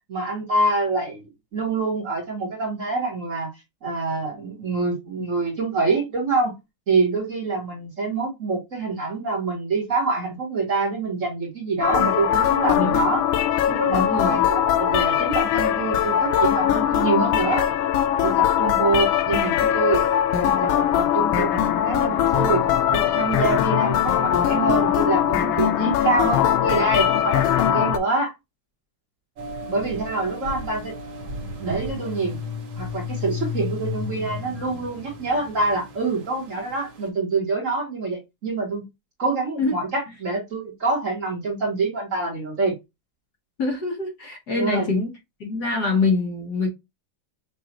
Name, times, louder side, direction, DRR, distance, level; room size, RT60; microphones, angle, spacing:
voice 1, 0.1-1.2 1.5-3.5 3.8-6.5 6.9-13.2 13.7-17.7 18.2-20.0 20.4-20.7 21.0-22.6 22.9-28.3 29.6-30.9 31.6-32.4 32.8-38.8 39.2-42.7 44.5-44.9, right 3 dB, 40° right, 1.8 m, -25 dB
sound 1, 11.8-28.0, left 10 dB, 90° left, 1.4 m, -21 dB
voice 2, 13.9-14.5 39.6-39.8 43.6-45.1 45.4-46.7, left 3 dB, 55° left, 1.7 m, -25 dB
sound 2, 29.4-37.1, right 2 dB, 80° right, 2.1 m, -39 dB
sound 3, 31.1-35.9, left 7 dB, 70° left, 1.8 m, -33 dB
6.5 x 2.7 x 2.9 m
omnidirectional pair, 2.2 m